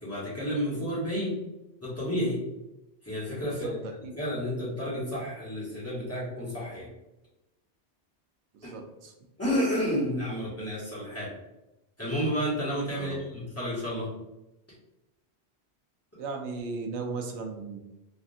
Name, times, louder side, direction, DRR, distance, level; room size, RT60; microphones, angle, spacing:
voice 1, 0.0-1.4 1.8-2.4 3.0-3.8 4.2-6.9 8.6-8.7 9.4-11.3 12.0-14.1, equal, 15° left, -8 dB, 1.1 m, -31 dB
voice 2, 3.5-4.1 8.5-9.1 12.9-13.2 16.2-17.8, right 3 dB, 85° right, 2 dB, 0.9 m, -37 dB
3.4 x 2.4 x 2.6 m, 0.95 s
omnidirectional pair, 1.1 m